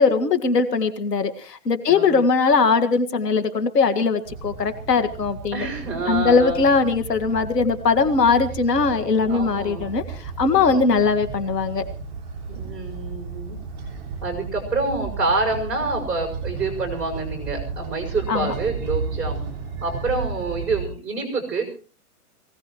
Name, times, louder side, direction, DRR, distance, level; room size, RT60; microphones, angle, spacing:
voice 1, 0.0-5.7 6.1-11.9 18.3-18.5, left 4 dB, 90° left, 9 dB, 2.1 m, -20 dB
voice 2, 1.9-2.2 5.5-6.7 9.2-9.9 10.5-11.0 12.5-13.6 14.2-19.4 19.8-21.7, right 3 dB, ahead, 1 dB, 5.0 m, -27 dB
sound 1, 4.2-20.9, right 4 dB, 40° right, 7.0 m, -33 dB
23.5 x 17.5 x 3.0 m, 0.36 s
hypercardioid pair, 170°, 47 cm